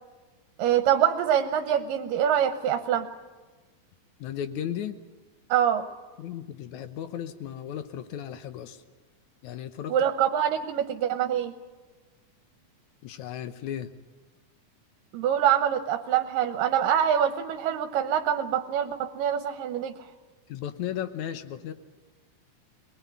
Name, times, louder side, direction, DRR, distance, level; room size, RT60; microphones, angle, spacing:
voice 1, 0.6-3.1 5.5-5.9 9.9-11.5 15.1-19.9, right 9 dB, 85° right, 8 dB, 2.7 m, -25 dB
voice 2, 4.2-5.0 6.2-8.8 9.4-9.9 13.0-13.9 20.5-21.7, left 10 dB, 70° left, 11 dB, 2.2 m, -35 dB
23.0 x 20.0 x 9.4 m, 1.3 s
omnidirectional pair, 3.9 m